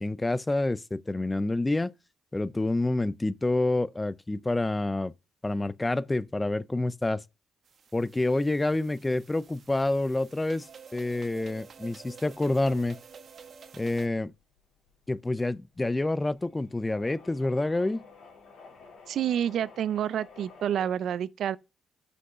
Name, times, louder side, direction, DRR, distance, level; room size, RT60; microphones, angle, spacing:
voice 1, 0.0-1.9 2.3-5.1 5.4-7.2 7.9-10.7 10.9-13.0 13.7-14.3 15.1-18.0, left 2 dB, 15° left, 0.4 m, -28 dB
sound 1, 7.6-14.1, right 6 dB, 50° right, 1.2 m, -50 dB
sound 2, 13.1-20.9, left 4 dB, 70° left, 3.1 m, -53 dB
voice 2, 19.1-21.6, right 9 dB, 70° right, 0.4 m, -28 dB
6.4 x 5.4 x 5.5 m
cardioid pair, 90°, 0 cm